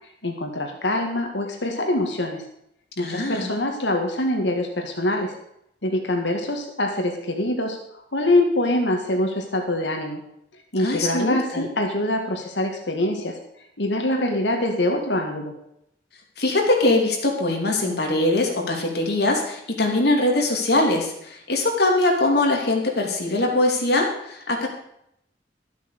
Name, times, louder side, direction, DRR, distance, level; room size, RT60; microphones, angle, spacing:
voice 1, 0.2-2.4 3.0-5.3 5.8-10.2 10.7-13.4 13.8-15.5, left 1 dB, 80° left, 2 dB, 1.9 m, -24 dB
voice 2, 3.0-3.5 10.8-11.6 16.4-24.7, left 2 dB, 65° left, 1 dB, 2.8 m, -22 dB
13.0 x 8.1 x 6.7 m, 0.76 s
head